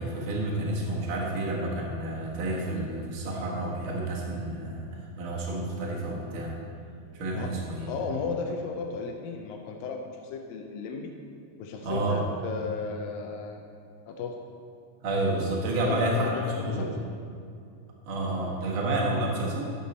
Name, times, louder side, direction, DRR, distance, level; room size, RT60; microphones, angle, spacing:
voice 1, 0.0-4.9 5.2-6.5 7.1-7.9 11.8-12.2 15.0-16.9 18.1-19.7, right 1 dB, 50° right, -2 dB, 1.7 m, -29 dB
voice 2, 7.9-11.1 11.6-13.7 14.1-14.4 15.9-17.0, left 4 dB, 80° left, 2 dB, 2.3 m, -34 dB
11.5 x 7.2 x 4.2 m, 2.4 s
omnidirectional pair, 4.1 m